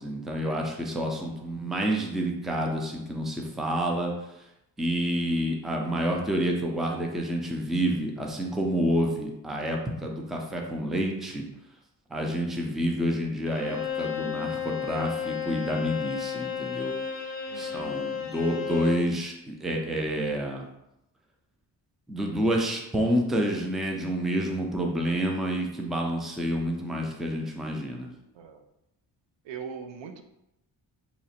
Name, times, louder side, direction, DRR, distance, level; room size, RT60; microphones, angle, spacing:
voice 1, 0.0-4.1 4.8-11.4 12.1-16.9 17.6-20.7 22.1-28.1, equal, ahead, 1 dB, 0.3 m, -28 dB
voice 2, 0.9-1.6 17.5-18.0 28.3-28.6 29.4-30.2, right 6 dB, 90° right, 6 dB, 0.5 m, -42 dB
Bowed string instrument, 13.5-19.1, left 8 dB, 40° left, 0.7 m, -33 dB
2.9 x 2.4 x 4.1 m, 0.87 s
wide cardioid pair, 140°, 42 cm